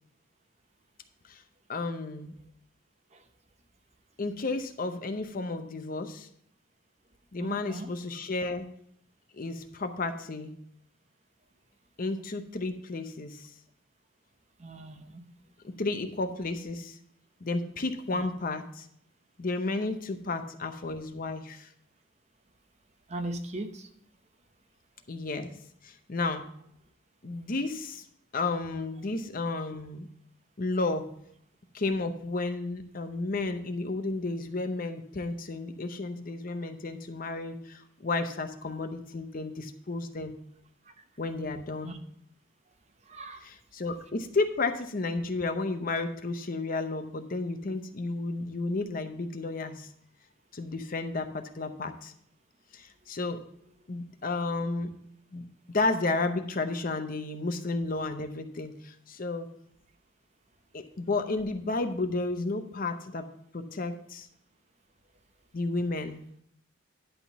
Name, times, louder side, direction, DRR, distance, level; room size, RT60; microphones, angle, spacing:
voice 1, 1.7-2.3 4.2-6.3 7.3-8.7 9.3-10.5 12.0-13.5 15.8-17.0 17.4-18.9 19.4-21.7 25.1-25.5 25.8-26.4 27.2-28.0 28.3-30.1 30.6-31.1 31.7-40.4 41.2-42.0 43.4-49.9 50.5-52.1 52.7-53.4 53.9-54.9 55.3-59.5 60.7-63.3 63.5-64.3 65.5-66.2, left 3 dB, 45° left, 7 dB, 0.7 m, -32 dB
voice 2, 7.4-7.9 14.6-15.2 18.1-18.3 23.1-23.9 41.8-42.0 43.1-43.4, right 1 dB, 35° right, 7 dB, 0.8 m, -38 dB
11.0 x 3.7 x 7.0 m, 0.69 s
head